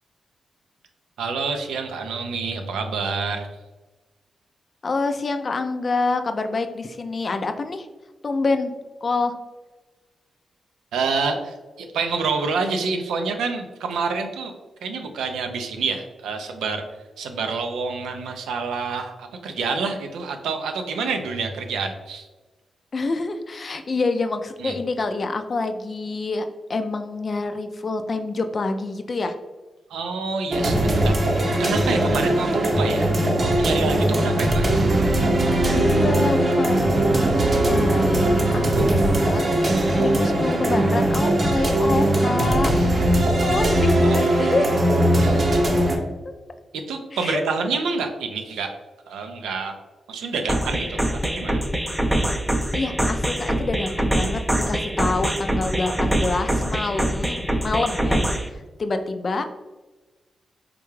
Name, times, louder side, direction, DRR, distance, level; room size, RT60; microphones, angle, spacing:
voice 1, 1.2-3.6 10.9-14.5 14.8-16.8 17.2-22.3 24.6-24.8 29.9-33.1 33.4-34.8 38.7-38.9 41.4-41.5 43.2-44.2 45.2-45.6 46.7-48.7 49.1-49.8 50.1-51.6, right 4 dB, 85° right, 5 dB, 0.3 m, -28 dB
voice 2, 4.8-7.9 8.2-8.7 9.0-9.3 22.9-26.4 26.7-29.3 35.7-36.9 37.5-39.4 39.9-42.7 43.1-44.9 46.0-46.1 47.1-47.4 52.7-59.5, left 3 dB, 50° left, 7 dB, 0.3 m, -26 dB
sound 1, 30.5-46.0, right 1 dB, 50° right, 0.6 m, -20 dB
sound 2, 50.5-58.5, right 1 dB, 10° right, 0.4 m, -24 dB
3.6 x 2.2 x 3.1 m, 1.2 s
supercardioid pair, 40°, 0 cm